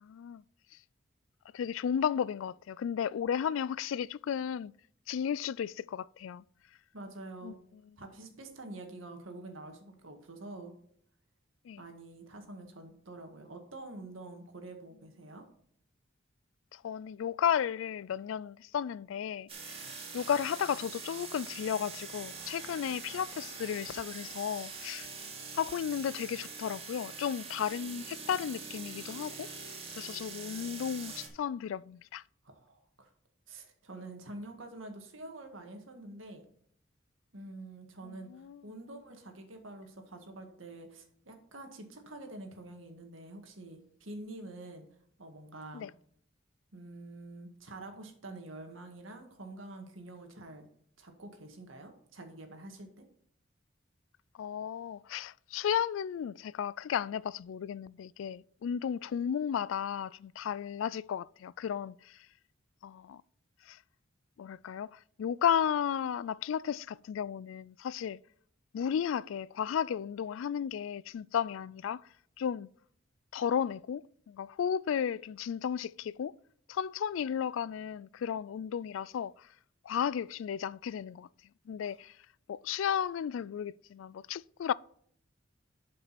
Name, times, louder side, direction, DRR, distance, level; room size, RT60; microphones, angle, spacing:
voice 1, 0.0-0.4 1.5-4.7 5.1-6.4 7.4-7.5 11.6-11.8 16.7-19.8 20.1-25.1 25.5-29.5 30.0-32.2 38.0-38.6 45.7-45.9 54.4-62.3 62.8-63.2 63.6-63.8 64.4-68.2 68.7-72.1 72.4-72.7 73.3-76.3 76.7-79.5 79.8-81.3 81.7-82.2 82.5-84.7, left 8 dB, 75° left, 0.3 m, -34 dB
voice 2, 6.9-7.6 8.0-10.7 11.8-15.5 32.4-33.1 33.5-36.4 37.3-44.8 45.2-45.9 46.7-50.7 51.0-53.1 81.8-81.9, right 2 dB, 80° right, 1.8 m, -47 dB
sound 1, 19.5-31.3, right 4 dB, 30° right, 2.1 m, -44 dB
12.0 x 5.4 x 4.2 m
head